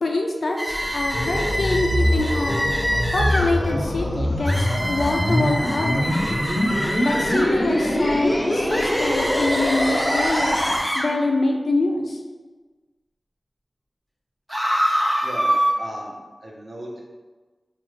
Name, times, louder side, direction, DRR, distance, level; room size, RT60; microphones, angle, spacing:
voice 1, 0.0-2.6 3.1-6.4 7.0-10.6 10.9-12.2, left 2 dB, 80° left, 1 dB, 0.5 m, -24 dB
sound 1, 0.6-3.5 4.5-7.5 8.7-11.1 14.5-15.7, equal, 5° right, 0.6 m, -26 dB
sound 2, 0.7-10.8, equal, 15° left, 0.9 m, -23 dB
voice 2, 15.2-17.0, right 1 dB, 70° right, -2 dB, 0.8 m, -36 dB
4.8 x 2.5 x 3.2 m, 1.3 s
wide cardioid pair, 65°, 0 cm